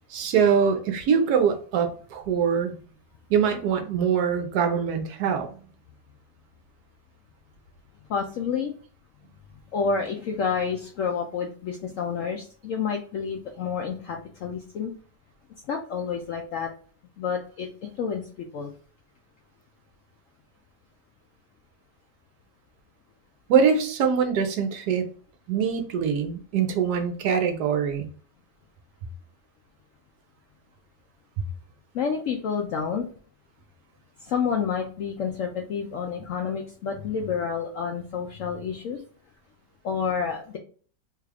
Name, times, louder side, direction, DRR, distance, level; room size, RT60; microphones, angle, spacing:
voice 1, 0.1-2.7 3.3-5.5 23.5-25.1 25.5-28.1, right 7 dB, 70° right, 6 dB, 1.1 m, -23 dB
voice 2, 8.1-8.7 9.7-14.9 15.7-16.7 17.2-18.3 18.5-18.7 31.9-33.1 34.2-39.0 39.8-40.6, left 6 dB, 80° left, 2 dB, 0.7 m, -29 dB
3.5 x 2.4 x 3.3 m, 0.42 s
omnidirectional pair, 1.9 m